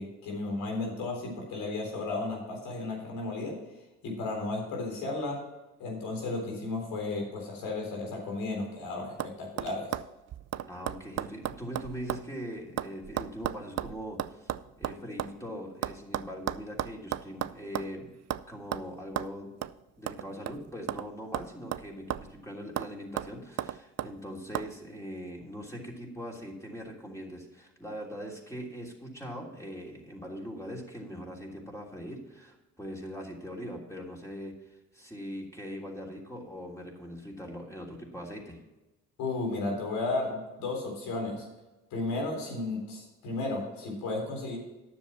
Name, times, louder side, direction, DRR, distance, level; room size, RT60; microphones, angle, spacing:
voice 1, 0.0-3.6 4.0-5.4 5.8-9.9 39.2-41.5 41.9-44.6, left 2 dB, 80° left, 0 dB, 3.9 m, -34 dB
sound 1, 8.4-8.8 9.2-9.3 9.6-12.3 12.5-15.3 15.8-18.0 18.3-18.5 18.7-18.9 19.2-19.3 19.6-19.7 20.1-21.1 21.3-22.4 22.8-22.9 23.2-24.1 24.5-24.7, right 12 dB, 50° right, 0.5 m, -34 dB
voice 2, 10.6-18.1 18.5-19.5 20.0-38.6, equal, 10° left, -2 dB, 3.2 m, -41 dB
9.9 x 7.3 x 5.9 m, 1.1 s
supercardioid pair, 65°, 34 cm